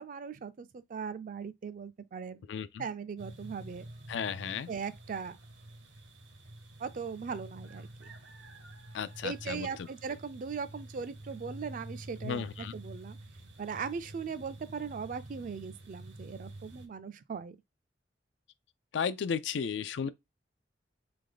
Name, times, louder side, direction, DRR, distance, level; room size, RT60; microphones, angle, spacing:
voice 1, 0.0-2.4 2.8-3.9 4.7-5.4 6.8-8.1 9.2-13.2 13.6-17.6 20.0-20.1, right 6 dB, 45° right, 0.4 m, -39 dB
voice 2, 2.5-2.9 4.1-4.7 8.9-9.9 12.2-12.7 18.9-20.1, left 6 dB, 75° left, 0.4 m, -34 dB
sound 1, 3.2-16.9, right 1 dB, 85° right, 1.0 m, -49 dB
3.5 x 3.0 x 3.8 m
head